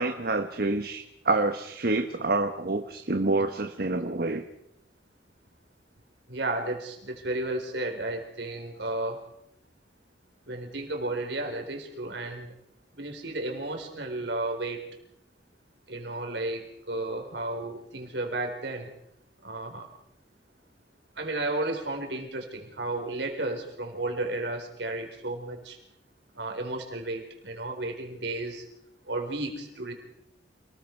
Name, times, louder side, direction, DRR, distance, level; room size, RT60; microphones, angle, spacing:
voice 1, 0.0-4.4, right 2 dB, 55° right, 6 dB, 1.2 m, -27 dB
voice 2, 6.3-9.2 10.5-12.5 12.9-14.9 15.9-18.9 19.4-19.9 21.2-25.8 26.3-28.7 29.1-29.9, right 2 dB, 75° right, 3 dB, 4.3 m, -33 dB
28.5 x 20.0 x 4.6 m, 0.76 s
head